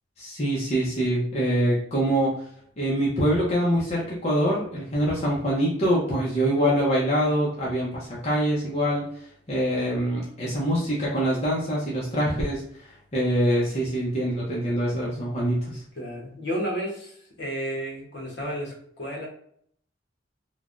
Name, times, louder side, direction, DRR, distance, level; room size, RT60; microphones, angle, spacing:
voice 1, 0.2-2.4 2.8-9.1 9.5-15.8, equal, 35° left, -5 dB, 0.6 m, -24 dB
voice 2, 16.0-19.3, equal, 60° left, -2 dB, 0.9 m, -32 dB
3.2 x 2.1 x 2.4 m, 0.63 s
head